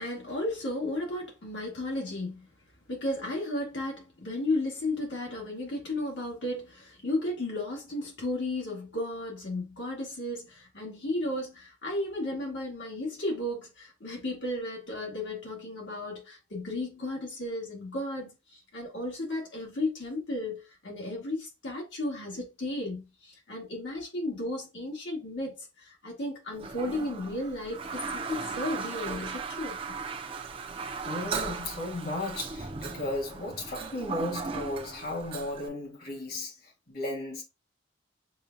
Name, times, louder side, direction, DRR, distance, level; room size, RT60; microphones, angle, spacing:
voice 1, 0.0-2.5 2.9-30.0, left 1 dB, 75° left, 1.8 m, -34 dB
Toilet flush, 26.6-35.7, right 5 dB, 30° right, 0.5 m, -37 dB
voice 2, 31.0-37.4, left 1 dB, 50° left, 1.6 m, -35 dB
6.7 x 2.3 x 2.6 m
head